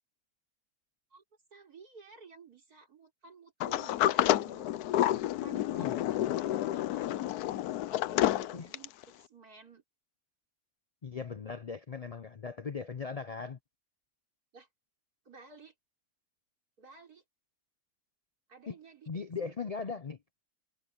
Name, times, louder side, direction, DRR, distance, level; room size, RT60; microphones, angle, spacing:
voice 1, 1.5-4.7 5.4-7.3 7.8-9.8 14.5-14.7 15.2-15.7 16.8-17.2 18.5-19.5, right 5 dB, 75° right, 4.7 m, -54 dB
Sliding door, 3.6-9.0, left 13 dB, 90° left, 1.2 m, -29 dB
voice 2, 5.8-6.4 8.5-8.7 11.0-13.6 18.7-18.8 19.1-20.2, left 5 dB, 65° left, 0.3 m, -39 dB
omnidirectional pair, 1.6 m